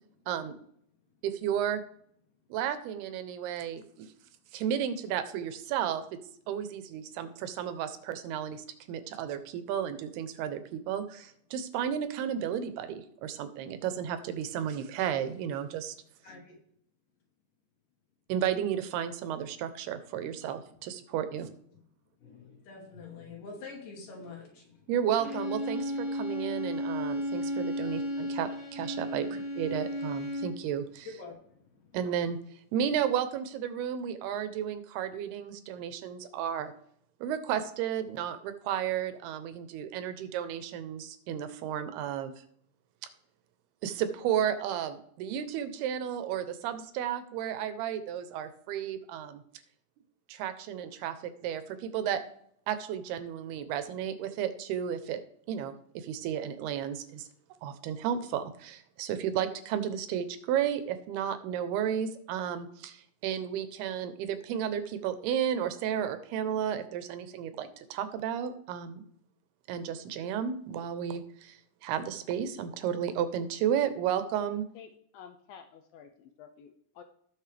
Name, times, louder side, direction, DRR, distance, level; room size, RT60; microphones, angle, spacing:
voice 1, 1.2-1.8 2.5-4.1 4.5-6.0 6.5-16.0 18.3-21.5 24.9-29.3 29.6-31.1 31.9-32.4 32.7-36.7 37.2-42.3 43.8-49.4 50.3-52.2 52.7-55.2 55.5-57.3 57.6-69.0 69.7-71.6 71.8-74.6, right 9 dB, 85° right, 11 dB, 2.8 m, -33 dB
voice 2, 16.2-16.6 21.4-21.5 22.2-24.9 26.4-26.7 27.0-27.5 27.8-27.9 29.2-29.3 30.3-30.4 31.0-31.9, left 4 dB, 60° left, -1 dB, 3.8 m, -47 dB
Bowed string instrument, 25.2-30.6, equal, 5° right, 3.9 m, -34 dB
voice 3, 74.8-77.0, left 7 dB, 80° left, 6 dB, 2.2 m, -51 dB
18.0 x 6.3 x 3.3 m, 0.67 s
omnidirectional pair, 4.5 m